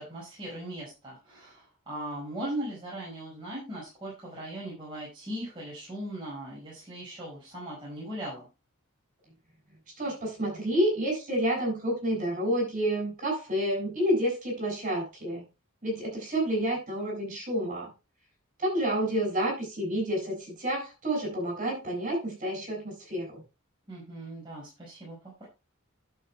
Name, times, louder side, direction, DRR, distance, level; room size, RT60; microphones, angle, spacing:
voice 1, 0.0-8.5 23.9-25.5, right 1 dB, 25° right, -7 dB, 5.3 m, -39 dB
voice 2, 10.0-15.4 15.8-17.9 18.6-23.4, right 1 dB, 40° right, 1 dB, 7.4 m, -29 dB
12.0 x 7.6 x 3.5 m, 0.28 s
head